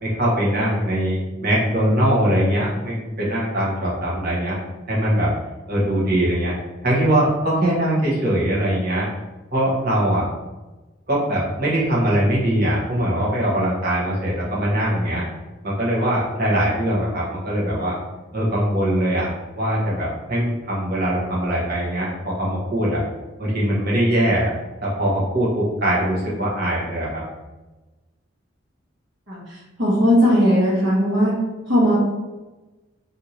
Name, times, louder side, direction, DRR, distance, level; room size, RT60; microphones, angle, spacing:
voice 1, 0.0-4.6 4.9-5.3 5.7-6.5 6.8-9.1 9.5-10.3 11.1-15.2 15.6-17.9 18.3-19.3 19.5-23.0 23.4-24.5 24.8-27.2, right 1 dB, 55° right, -6 dB, 1.2 m, -21 dB
voice 2, 29.8-31.3 31.7-31.9, equal, 70° right, -7 dB, 1.2 m, -17 dB
3.4 x 2.7 x 2.8 m, 1.1 s
head